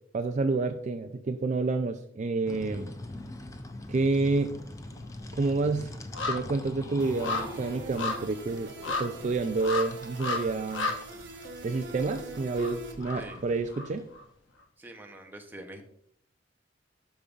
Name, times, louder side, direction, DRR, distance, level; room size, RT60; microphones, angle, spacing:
voice 1, 0.1-2.9 3.9-4.5 5.3-5.9 6.3-8.7 9.0-10.9 11.6-14.0, right 3 dB, 40° right, 8 dB, 0.3 m, -29 dB
sound 1, 2.5-14.0, left 1 dB, 15° left, 0.5 m, -44 dB
sound 2, 3.2-4.0 4.3-14.2 14.6-14.7, left 3 dB, 90° left, 1.1 m, -36 dB
sound 3, 7.0-12.9, right 2 dB, 70° right, 1.1 m, -44 dB
voice 2, 14.8-15.8, right 1 dB, 10° right, 3 dB, 0.8 m, -45 dB
11.5 x 5.3 x 2.4 m, 0.65 s
head